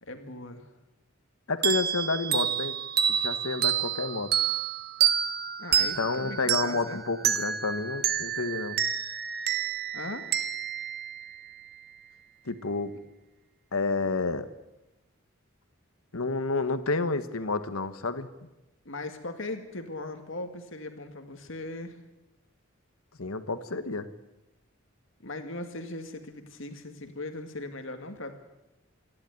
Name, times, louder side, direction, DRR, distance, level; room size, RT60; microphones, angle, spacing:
voice 1, 0.0-0.7 5.6-7.0 9.9-10.3 12.9-13.0 18.9-22.0 25.2-28.3, left 2 dB, 65° left, 6 dB, 2.1 m, -39 dB
voice 2, 1.5-2.8 3.1-4.3 6.0-8.8 12.5-12.9 13.7-14.5 16.1-18.3 23.2-24.1, left 3 dB, 85° left, 11 dB, 1.4 m, -30 dB
sound 1, 1.6-11.9, right 9 dB, 45° right, 1.1 m, -29 dB
27.0 x 11.5 x 9.4 m, 1.0 s
head